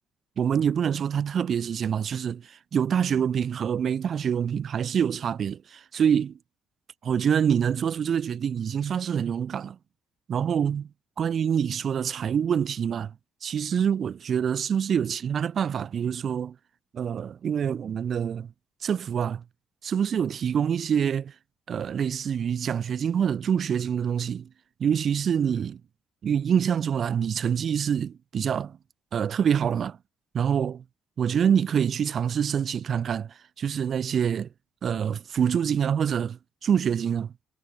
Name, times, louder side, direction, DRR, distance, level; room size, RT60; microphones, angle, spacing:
voice 1, 0.4-6.4 7.0-9.8 10.3-10.9 11.2-13.1 13.4-16.6 16.9-18.5 18.8-19.4 19.8-21.3 21.7-24.5 24.8-25.8 26.2-28.8 29.1-30.0 30.3-30.8 31.2-34.5 34.8-37.3, right 8 dB, 50° right, 2.7 m, -26 dB
cardioid pair, 85°, 0 cm